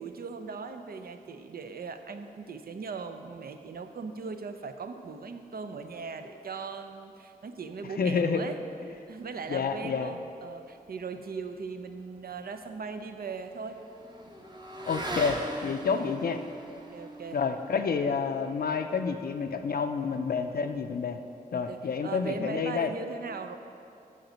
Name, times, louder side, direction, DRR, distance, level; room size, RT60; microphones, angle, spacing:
voice 1, 0.0-8.6 9.1-13.8 15.9-16.1 16.9-17.4 21.5-23.6, right 5 dB, 75° right, 8 dB, 0.5 m, -39 dB
voice 2, 8.0-8.4 9.5-10.2 14.9-16.4 17.3-21.2 21.5-22.9, left 5 dB, 75° left, 7 dB, 0.4 m, -29 dB
Motorcycle / Accelerating revving vroom, 12.1-20.8, right 1 dB, 30° right, 0.9 m, -42 dB
7.7 x 5.2 x 6.2 m, 2.6 s
wide cardioid pair, 70°, 16 cm